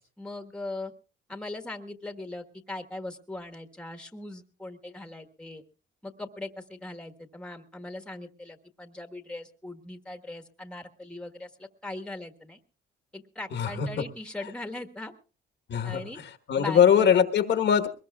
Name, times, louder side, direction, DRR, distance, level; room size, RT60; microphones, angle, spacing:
voice 1, 0.2-0.9 1.3-5.6 6.0-12.6 13.1-15.1 15.8-16.2 16.5-17.2, left 2 dB, 5° left, 7 dB, 1.4 m, -40 dB
voice 2, 13.5-13.9 15.7-17.9, left 8 dB, 65° left, 7 dB, 1.3 m, -22 dB
22.0 x 20.0 x 2.3 m, 0.34 s
cardioid pair, 90°, 20 cm